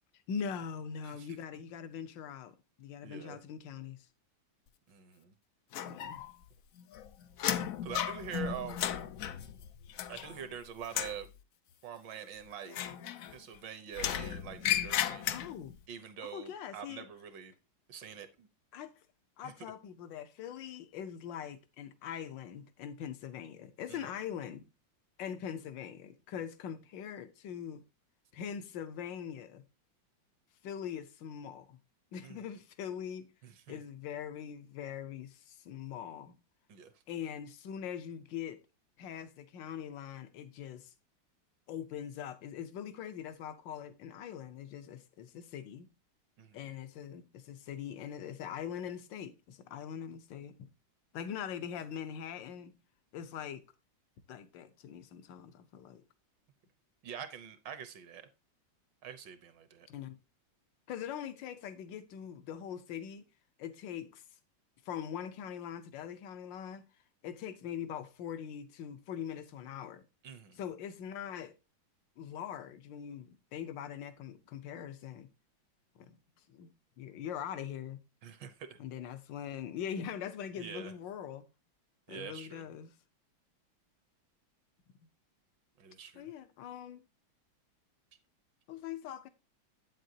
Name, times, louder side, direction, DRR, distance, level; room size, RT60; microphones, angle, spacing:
voice 1, 0.3-4.0 5.8-6.3 15.3-15.7 16.2-17.1 18.7-18.9 19.4-24.7 25.2-27.8 28.3-29.6 30.6-31.8 32.1-33.3 33.7-36.4 37.1-38.6 39.0-40.9 41.7-45.9 46.5-50.7 51.1-52.8 53.1-53.6 54.3-56.0 59.9-60.2 60.9-63.3 63.6-64.2 64.8-66.8 67.2-70.1 70.6-71.5 72.2-75.3 75.9-76.2 76.5-78.0 78.8-81.5 82.1-83.0 86.1-87.0 88.7-89.3, left 8 dB, 70° left, 1.4 m, -42 dB
voice 2, 3.0-3.4 4.9-5.3 7.8-9.0 10.1-11.3 11.8-12.8 13.3-15.3 15.9-17.5 17.9-18.5 19.4-19.5 23.9-24.1 32.2-32.5 33.4-33.8 36.7-36.9 46.4-46.7 57.0-58.3 59.0-59.9 70.2-70.6 78.2-78.8 80.6-80.9 82.1-82.6 85.8-86.3, right 8 dB, 70° right, 1.5 m, -45 dB
sound 1, 5.7-6.5 6.8-10.5 10.8-11.2 12.7-13.6 13.9-15.7, left 10 dB, 90° left, 0.7 m, -35 dB
8.4 x 7.7 x 2.7 m
omnidirectional pair, 2.1 m